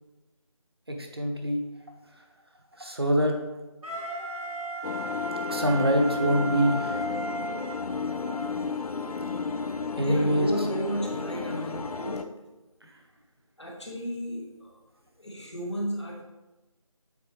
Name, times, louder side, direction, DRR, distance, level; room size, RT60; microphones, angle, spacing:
voice 1, 0.9-1.6 2.8-3.3 5.5-7.1 10.0-10.5 12.8-13.0, equal, 45° right, 3 dB, 0.9 m, -25 dB
Wind instrument woodwind instrument, 3.8-8.6, left 1 dB, 85° right, 1.5 m, -35 dB
sound 1, 4.8-12.2, left 4 dB, 90° left, 0.5 m, -33 dB
voice 2, 9.5-12.3 13.6-14.8 15.2-16.2, equal, 50° left, -1 dB, 1.3 m, -34 dB
8.0 x 4.0 x 3.0 m, 1.1 s
figure-of-eight pair, 175°, 18 cm